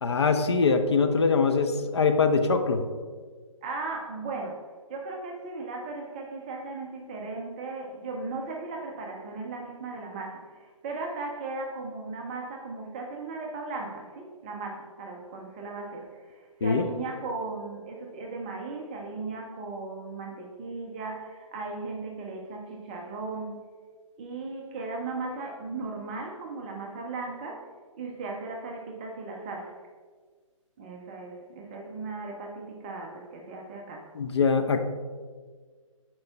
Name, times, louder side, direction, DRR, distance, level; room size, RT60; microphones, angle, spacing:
voice 1, 0.0-2.8 16.6-16.8 34.2-34.8, left 4 dB, 50° left, 6 dB, 0.6 m, -23 dB
voice 2, 3.6-23.5 24.2-27.7 28.0-29.8 30.8-34.1, right 3 dB, 15° right, 1 dB, 0.4 m, -37 dB
10.0 x 4.4 x 2.3 m, 1.5 s
figure-of-eight pair, 135°, 17 cm